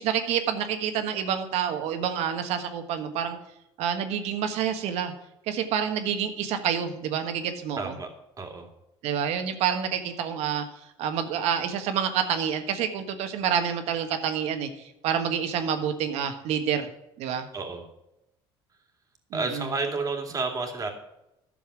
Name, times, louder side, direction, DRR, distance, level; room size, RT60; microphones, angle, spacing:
voice 1, 0.0-3.4 3.8-5.1 5.5-7.9 9.0-10.6 11.0-16.9 17.2-17.5 19.3-19.7, right 8 dB, 70° right, 7 dB, 1.5 m, -28 dB
voice 2, 7.8-8.1 8.4-8.7 17.5-17.8 19.3-20.9, right 3 dB, 30° right, 4 dB, 2.4 m, -30 dB
11.0 x 7.0 x 6.2 m, 0.86 s
supercardioid pair, 100°, 11 cm